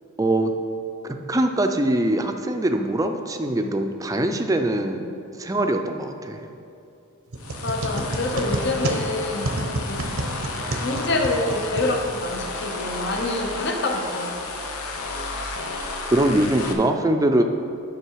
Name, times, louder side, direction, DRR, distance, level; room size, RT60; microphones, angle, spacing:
voice 1, 0.2-0.5 1.3-5.1 5.3-6.4 15.8-17.4, right 1 dB, 15° right, 5 dB, 0.5 m, -22 dB
sound 1, 7.3-12.4, right 1 dB, 85° right, 0.9 m, -30 dB
sound 2, 7.4-16.7, left 3 dB, 90° left, 0.9 m, -32 dB
voice 2, 7.6-10.1 10.7-14.4, left 2 dB, 55° left, 3 dB, 0.8 m, -27 dB
9.8 x 6.5 x 4.7 m, 2.6 s
head